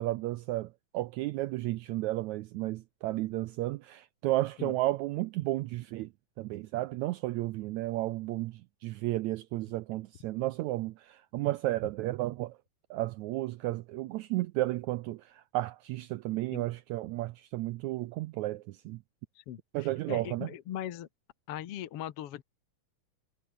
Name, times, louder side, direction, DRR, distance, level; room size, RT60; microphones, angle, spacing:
voice 1, 0.0-6.1 6.4-12.6 12.9-19.0 19.7-20.5, right 17 dB, 85° right, 1.6 m, -33 dB
voice 2, 20.1-21.1 21.5-22.4, left 11 dB, 60° left, 1.6 m, -39 dB
omnidirectional pair, 3.9 m